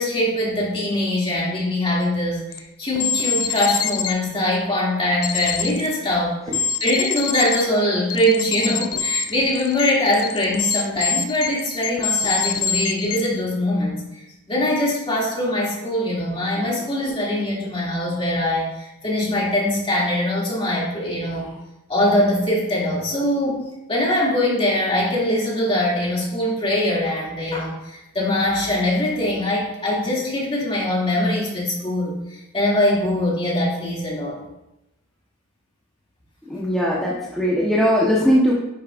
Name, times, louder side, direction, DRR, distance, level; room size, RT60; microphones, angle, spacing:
voice 1, 0.0-2.5 2.8-21.5 21.9-34.4, left 1 dB, 25° left, -5 dB, 2.5 m, -22 dB
sound 1, 2.5-2.6 3.0-4.2 5.2-5.9 6.5-7.6 8.1-13.3, left 7 dB, 75° left, 0.7 m, -25 dB
voice 2, 36.5-38.5, equal, ahead, -7 dB, 1.0 m, -19 dB
9.8 x 7.2 x 2.5 m, 0.93 s
head